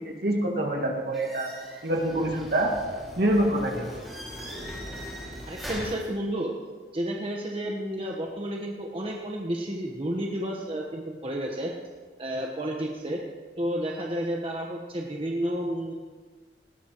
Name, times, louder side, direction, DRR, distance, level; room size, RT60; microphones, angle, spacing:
voice 1, 0.0-1.5 1.8-2.8 3.2-3.9, right 1 dB, 60° right, 1 dB, 2.1 m, -26 dB
sound 1, 1.1-6.1, equal, ahead, 5.4 m, -40 dB
voice 2, 5.4-6.5 6.9-11.7 12.2-13.2 13.6-15.9, right 1 dB, 30° right, -1 dB, 1.2 m, -31 dB
19.5 x 16.5 x 3.0 m, 1.5 s
head